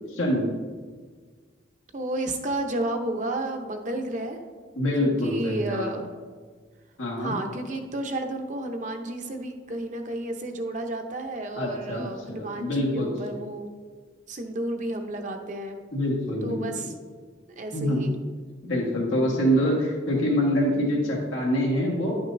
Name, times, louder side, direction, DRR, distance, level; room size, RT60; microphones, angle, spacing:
voice 1, 0.1-0.5 4.8-5.9 7.0-7.4 11.5-13.1 15.9-16.6 17.7-18.1 18.6-22.3, equal, 85° left, -3 dB, 1.5 m, -25 dB
voice 2, 1.9-4.4 5.0-6.1 7.2-13.7 14.3-15.8 16.4-16.9 17.6-18.1, right 1 dB, 40° right, 5 dB, 0.7 m, -32 dB
10.5 x 6.1 x 2.6 m, 1.5 s
head